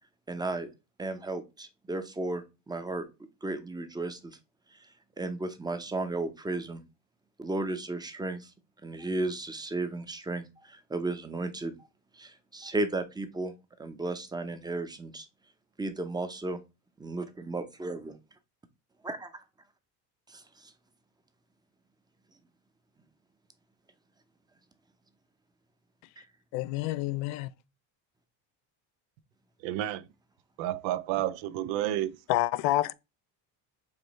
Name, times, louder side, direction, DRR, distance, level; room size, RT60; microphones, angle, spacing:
voice 1, 0.3-0.7 1.0-3.1 3.4-4.4 4.7-4.9 5.2-6.8 7.4-8.5 8.8-11.7 12.1-13.5 13.8-15.3 15.8-16.6 17.0-18.2 19.0-19.3 20.3-20.7 26.2-26.3, right 2 dB, 10° right, 0.7 m, -34 dB
voice 2, 26.5-27.5 32.3-32.9, left 15 dB, 85° left, 0.5 m, -28 dB
voice 3, 29.6-30.1 30.6-32.3, right 13 dB, 80° right, 0.7 m, -31 dB
5.1 x 3.2 x 3.0 m
cardioid pair, 115°, 45 cm